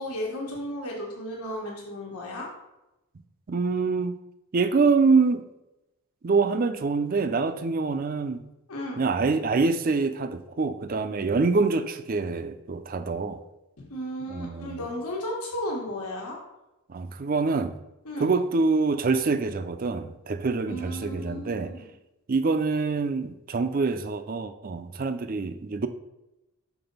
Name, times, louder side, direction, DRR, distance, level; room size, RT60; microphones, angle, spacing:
voice 1, 0.0-2.5 8.7-9.0 13.8-16.4 18.0-18.3 20.7-21.9, left 1 dB, 90° left, 1.4 m, -34 dB
voice 2, 3.5-4.2 4.5-5.5 6.2-8.4 9.0-13.4 14.3-14.9 16.9-17.8 18.2-21.7 22.3-25.9, right 4 dB, 40° right, 0.4 m, -25 dB
6.0 x 4.2 x 5.3 m
head